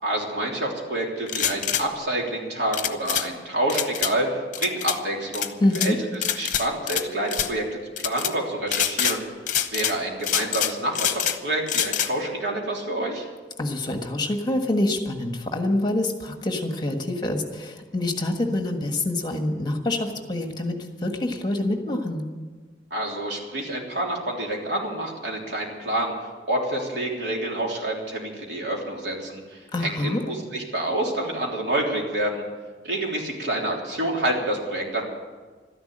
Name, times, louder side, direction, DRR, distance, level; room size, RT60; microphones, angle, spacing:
voice 1, 0.0-9.2 9.7-13.2 22.9-26.1 26.5-29.4 29.8-32.4 32.8-35.0, right 1 dB, 80° right, -1 dB, 3.4 m, -28 dB
sound 1, 1.3-1.8 2.7-3.3 3.7-4.1 4.5-5.0 5.3-5.9 6.2-7.0 7.3-7.5 8.0-8.3 8.7-9.2 9.5-10.0 10.2-11.4 11.7-12.1, left 9 dB, 45° left, 0.9 m, -25 dB
voice 2, 5.6-6.0 13.6-22.2 29.7-30.2, left 1 dB, 25° left, 4 dB, 1.5 m, -26 dB
13.0 x 11.0 x 8.8 m, 1.4 s
head